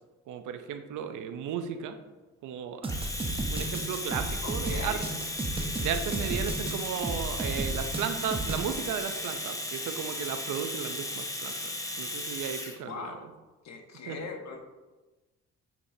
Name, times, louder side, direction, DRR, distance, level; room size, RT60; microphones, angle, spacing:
voice 1, 0.3-2.0 2.4-2.9 3.5-5.0 5.8-11.5 12.0-13.1 14.1-14.2, right 8 dB, 80° right, 8 dB, 0.7 m, -35 dB
sound 1, 2.8-8.7, right 2 dB, 20° right, 0.9 m, -33 dB
Domestic sounds home sounds, 2.9-12.8, left 1 dB, 10° left, 0.8 m, -36 dB
voice 2, 4.4-5.2 12.8-13.3 13.6-14.6, left 4 dB, 60° left, 3 dB, 1.2 m, -40 dB
7.4 x 6.9 x 2.8 m, 1.2 s
cardioid pair, 90°, 30 cm